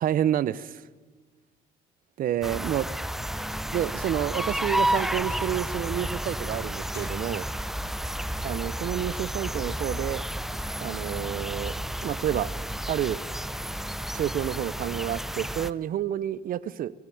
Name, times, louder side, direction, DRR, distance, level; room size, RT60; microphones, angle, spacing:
voice 1, 0.0-0.8 2.2-2.9 3.7-7.5 8.4-10.2 10.8-11.7 12.0-12.5 12.9-13.2 14.1-16.9, right 11 dB, 55° right, 19 dB, 0.8 m, -29 dB
sound 1, 2.4-15.7, right 1 dB, ahead, 0.6 m, -31 dB
sound 2, 4.7-8.8, left 6 dB, 75° left, 4.4 m, -51 dB
21.5 x 15.0 x 9.3 m, 1.4 s
cardioid pair, 110°, 17 cm